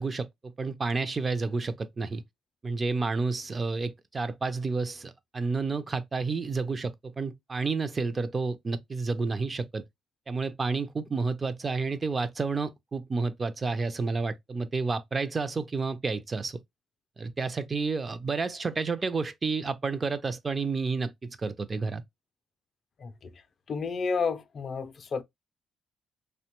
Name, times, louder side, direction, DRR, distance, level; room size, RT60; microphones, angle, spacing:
voice 1, 0.0-2.2 2.6-9.8 10.3-16.6 17.2-22.0, right 4 dB, 30° right, 0.4 m, -30 dB
voice 2, 23.0-23.3 23.7-25.2, left 5 dB, 50° left, 0.3 m, -31 dB
2.8 x 2.1 x 2.9 m
cardioid pair, 90°, 0 cm